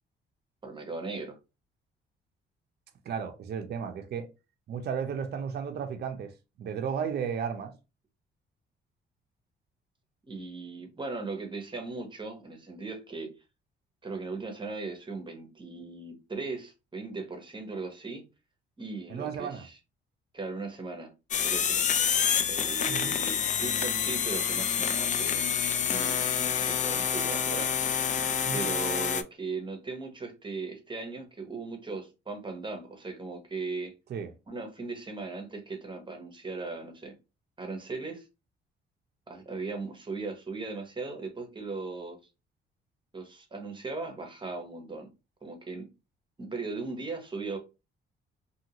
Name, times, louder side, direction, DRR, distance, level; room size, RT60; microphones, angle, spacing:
voice 1, 0.6-1.4 10.3-13.3 14.0-18.2 18.8-19.8 20.3-21.1 21.4-21.9 22.5-25.5 25.9-27.7 28.5-33.9 34.5-37.1 37.6-38.3 39.3-42.2 43.1-45.1 45.4-45.9 46.4-47.6, right 3 dB, 25° right, 1.0 m, -38 dB
voice 2, 3.1-4.3 4.7-6.3 6.6-7.7 19.1-19.7 22.9-23.2 28.4-28.7 34.1-34.3, right 7 dB, 55° right, 0.6 m, -34 dB
sound 1, 21.3-29.2, left 7 dB, 40° left, 0.4 m, -28 dB
2.7 x 2.6 x 2.9 m
cardioid pair, 90°, 20 cm